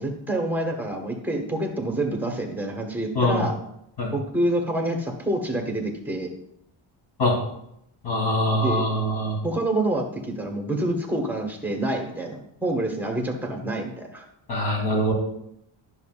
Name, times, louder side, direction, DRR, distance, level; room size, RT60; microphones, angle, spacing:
voice 1, 0.0-3.5 4.1-6.3 8.6-8.8 9.4-14.2, right 1 dB, 5° right, 2 dB, 1.4 m, -27 dB
voice 2, 8.0-9.4 14.5-15.1, left 1 dB, 55° left, -1 dB, 3.4 m, -23 dB
10.5 x 6.8 x 2.5 m, 0.76 s
cardioid pair, 115°, 49 cm